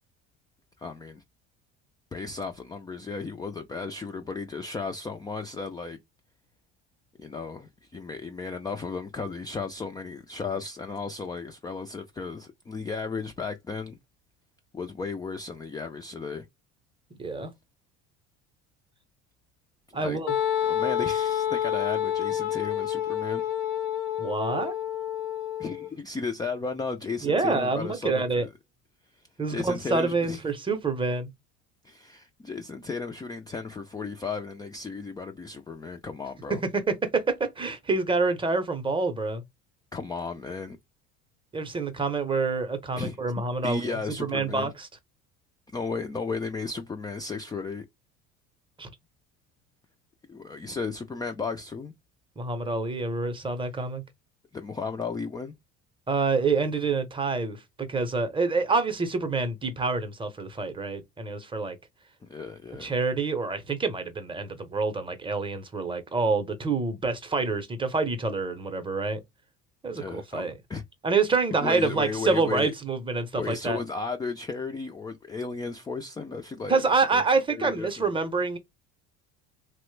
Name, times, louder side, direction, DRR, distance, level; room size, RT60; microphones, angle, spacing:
voice 1, 0.8-1.2 2.1-6.0 7.2-14.0 14.7-16.5 19.9-20.2 20.6-23.4 25.6-28.5 29.5-30.4 31.8-36.6 39.9-40.8 43.0-43.2 43.6-44.7 45.7-47.8 50.3-51.9 54.5-55.5 62.2-62.9 70.0-70.8 71.6-72.7 73.3-77.2 77.5-78.1, left 4 dB, 15° left, 0.3 m, -34 dB
voice 2, 17.2-17.5 19.9-20.3 24.2-24.7 27.2-28.5 29.4-31.3 36.5-39.4 41.5-44.9 48.8-48.9 52.4-54.0 56.1-61.8 62.8-69.2 69.8-70.5 71.0-73.8 76.7-78.6, right 4 dB, 15° right, 0.7 m, -27 dB
Wind instrument woodwind instrument, 20.3-25.9, left 10 dB, 85° left, 0.7 m, -28 dB
3.0 x 2.1 x 3.1 m
supercardioid pair, 100°, 30 cm